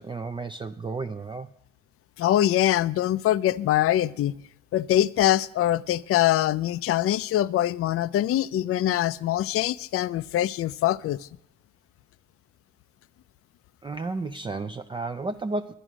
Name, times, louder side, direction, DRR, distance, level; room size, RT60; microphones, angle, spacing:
voice 1, 0.0-1.5 13.8-15.7, right 3 dB, 15° right, 0.4 m, -32 dB
voice 2, 2.2-4.3 4.7-11.3, left 13 dB, 50° left, 0.4 m, -23 dB
11.0 x 10.0 x 6.1 m
cardioid pair, 90°, 30 cm